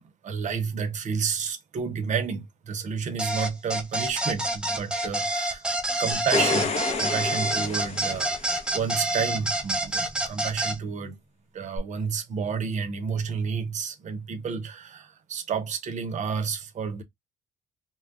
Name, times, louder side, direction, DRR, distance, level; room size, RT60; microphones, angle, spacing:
voice 1, 0.0-5.6 6.0-11.2 11.5-17.0, right 6 dB, 45° right, 0.7 m, -30 dB
sound 1, 3.2-10.8, right 1 dB, 5° right, 0.5 m, -28 dB
sound 2, 6.1-8.7 11.8-11.9, left 4 dB, 40° left, 0.7 m, -29 dB
2.2 x 2.2 x 3.6 m
cardioid pair, 110°, 17 cm